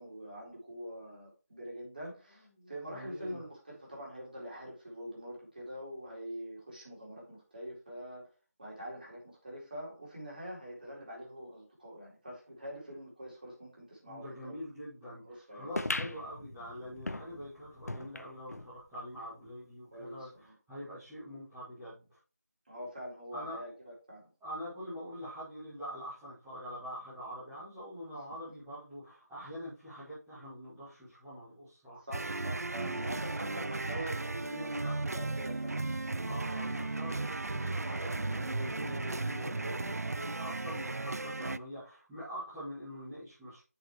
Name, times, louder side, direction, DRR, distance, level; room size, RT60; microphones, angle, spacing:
voice 1, 0.0-8.3 8.6-14.6 15.1-15.7 19.9-20.6 22.7-24.3 32.1-35.9 39.6-40.1 41.0-41.2, equal, 35° right, -4 dB, 4.1 m, -45 dB
voice 2, 2.5-3.4 14.1-22.2 23.3-23.6 24.4-32.0 32.8-33.1 33.3-33.6 34.4-35.0 36.2-43.6, equal, ahead, -19 dB, 0.7 m, -44 dB
sound 1, 15.7-18.7 19.1-19.2 19.4-19.5 20.3-20.4, left 2 dB, 70° left, 0.9 m, -39 dB
sound 2, 32.1-41.6, right 2 dB, 70° right, 0.4 m, -35 dB
9.5 x 6.6 x 3.1 m, 0.33 s
figure-of-eight pair, 175°, 9 cm